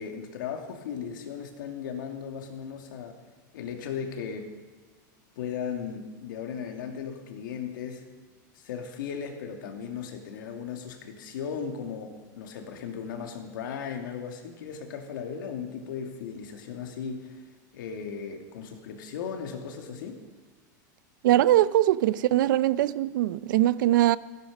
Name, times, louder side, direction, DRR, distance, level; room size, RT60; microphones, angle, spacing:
voice 1, 0.0-3.2 3.5-4.5 5.4-8.1 8.5-17.4 17.7-20.2, left 7 dB, 90° left, 2.4 m, -36 dB
voice 2, 21.2-24.2, right 14 dB, 80° right, 0.6 m, -22 dB
15.0 x 14.5 x 5.3 m
supercardioid pair, 145°, 10 cm